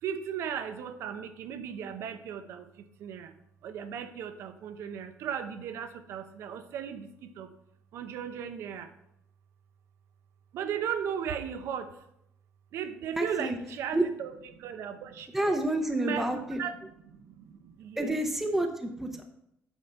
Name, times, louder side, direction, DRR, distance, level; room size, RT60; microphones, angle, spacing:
voice 1, 0.0-3.3 3.6-7.5 7.9-8.9 10.5-11.9 12.7-15.3 15.9-16.7 17.0-18.2, right 8 dB, 70° right, 9 dB, 0.8 m, -36 dB
voice 2, 13.2-13.6 13.9-14.0 15.3-16.6 18.0-19.2, right 1 dB, 5° right, 3 dB, 0.8 m, -29 dB
8.2 x 4.0 x 5.7 m, 0.79 s
cardioid pair, 120°, 5 cm